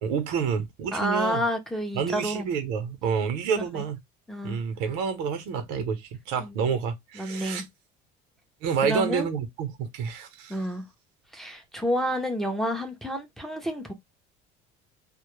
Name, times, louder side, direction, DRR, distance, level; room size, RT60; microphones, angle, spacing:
voice 1, 0.0-1.4 1.9-4.0 4.4-7.6 8.6-10.5, right 6 dB, 90° right, 0.7 m, -28 dB
voice 2, 0.9-2.5 3.7-3.8 4.3-4.6 6.4-6.6 7.1-7.6 8.8-9.3 10.5-10.8 11.3-13.9, equal, ahead, 0.5 m, -29 dB
2.1 x 2.0 x 3.0 m
cardioid pair, 145°, 19 cm